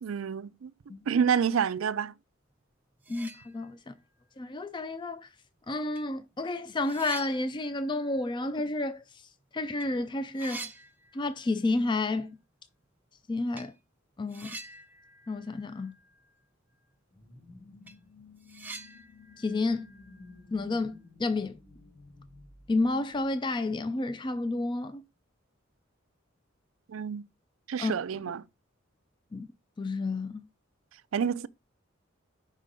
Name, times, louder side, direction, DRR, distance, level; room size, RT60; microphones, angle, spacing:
voice 1, 0.0-0.7 1.1-2.1 26.9-27.2 27.7-28.4 31.1-31.5, right 7 dB, 90° right, 0.4 m, -28 dB
sound 1, 2.6-2.7 3.0-4.0 4.4-4.5 5.4-5.5 5.9-9.4 9.7-9.9 10.1-11.7 12.0-12.1 13.5-13.8 14.3-16.4 16.7-16.8 17.2-17.3 17.7-20.9, right 3 dB, 10° right, 0.6 m, -47 dB
voice 2, 3.1-3.9 4.4-5.3 5.7-10.7 11.1-12.4 13.3-13.7 14.2-14.6 15.3-15.9 19.4-19.9 20.5-21.6 22.7-25.0 27.8-27.9 29.3-29.5 29.8-30.5, left 2 dB, 25° left, 0.4 m, -31 dB
sound 2, 17.1-23.6, left 3 dB, 65° left, 2.9 m, -54 dB
5.5 x 3.5 x 5.2 m
head